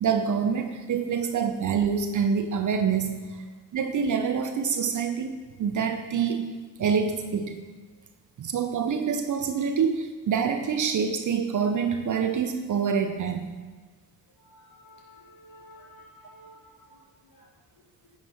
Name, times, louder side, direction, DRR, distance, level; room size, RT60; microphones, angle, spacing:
voice 1, 0.0-3.4 3.7-6.5 6.8-7.6 8.4-13.4, right 6 dB, 40° right, 7 dB, 0.8 m, -26 dB
voice 2, 14.4-18.1, equal, 45° left, -1 dB, 2.1 m, -53 dB
9.8 x 4.8 x 4.4 m, 1.4 s
figure-of-eight pair, 40°, 47 cm